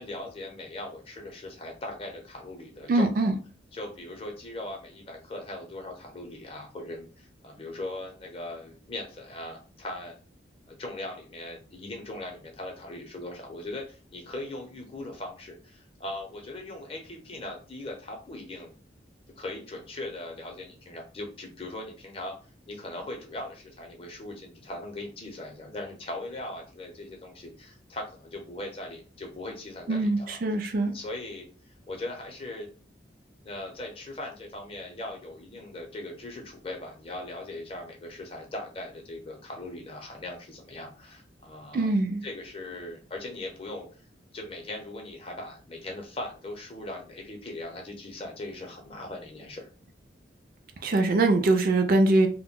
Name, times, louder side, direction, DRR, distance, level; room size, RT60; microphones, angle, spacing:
voice 1, 0.0-3.3 3.7-10.2 10.7-18.7 19.4-22.4 22.7-30.4 30.9-31.5 31.9-32.7 33.4-41.9 42.2-43.9 44.3-49.7, left 2 dB, 30° left, 0.6 m, -39 dB
voice 2, 2.9-3.3 29.9-30.9 41.7-42.2 50.8-52.3, right 2 dB, 50° right, 0.3 m, -23 dB
2.2 x 2.1 x 3.6 m
head